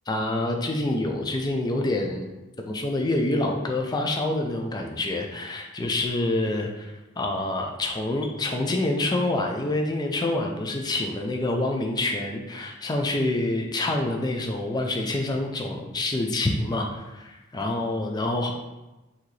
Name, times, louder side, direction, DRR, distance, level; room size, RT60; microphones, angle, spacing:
voice 1, 0.1-2.3 2.6-18.5, left 2 dB, 20° left, 2 dB, 0.4 m, -27 dB
5.9 x 2.8 x 3.1 m, 1.0 s
head